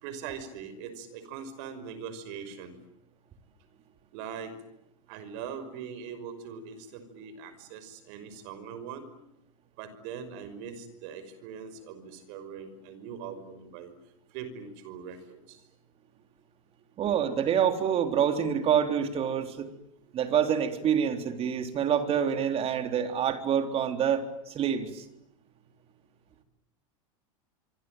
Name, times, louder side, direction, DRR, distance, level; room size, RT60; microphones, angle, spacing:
voice 1, 0.0-2.7 4.1-4.5 5.1-9.0 9.8-13.9 14.3-15.6, right 7 dB, 60° right, 12 dB, 5.8 m, -41 dB
voice 2, 17.0-19.7 20.1-25.0, right 8 dB, 35° right, 7 dB, 3.7 m, -27 dB
26.0 x 24.5 x 9.2 m, 0.80 s
hypercardioid pair, 115°, 17 cm